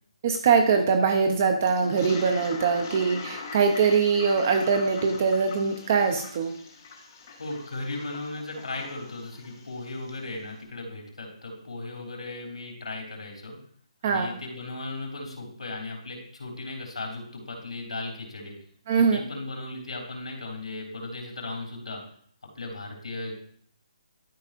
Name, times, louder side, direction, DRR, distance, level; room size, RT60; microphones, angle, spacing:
voice 1, 0.2-6.5 14.0-14.3 18.9-19.2, right 5 dB, 20° right, 5 dB, 0.5 m, -22 dB
Toilet flush, 1.6-10.2, left 4 dB, 25° left, 1.3 m, -42 dB
voice 2, 7.4-13.5 14.0-18.5 19.0-22.0 22.5-23.3, left 2 dB, 80° left, 1 dB, 3.1 m, -36 dB
12.0 x 5.3 x 2.5 m, 0.62 s
hypercardioid pair, 175°, 3 cm